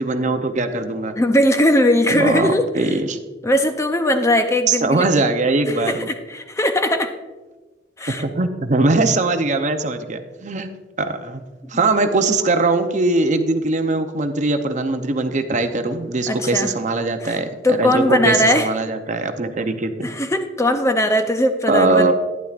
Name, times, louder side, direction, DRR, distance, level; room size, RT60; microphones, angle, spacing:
voice 1, 0.0-1.1 2.1-3.2 4.7-6.1 8.1-10.7 11.0-11.4 11.7-20.1 21.7-22.1, right 3 dB, 40° right, 7 dB, 0.6 m, -21 dB
voice 2, 1.2-2.9 3.4-5.1 5.7-7.1 8.0-8.2 16.3-16.7 17.2-18.7 20.0-22.1, left 1 dB, 15° left, 7 dB, 0.5 m, -19 dB
11.5 x 10.5 x 2.4 m, 1.2 s
head